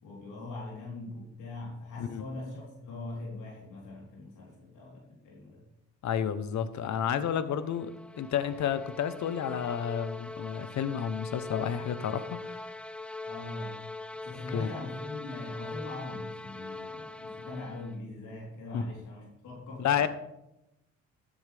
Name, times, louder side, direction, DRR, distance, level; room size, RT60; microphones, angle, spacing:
voice 1, 0.0-5.6 13.2-13.8 14.2-20.1, left 2 dB, 85° left, -4 dB, 3.9 m, -41 dB
voice 2, 6.0-7.9 8.2-12.6 14.5-14.7 18.7-18.8 19.8-20.1, left 8 dB, 70° left, 12 dB, 1.0 m, -31 dB
sound 1, 7.5-18.1, left 2 dB, 5° left, 0.4 m, -42 dB
13.5 x 10.0 x 3.5 m, 0.88 s
cardioid pair, 90°, 30 cm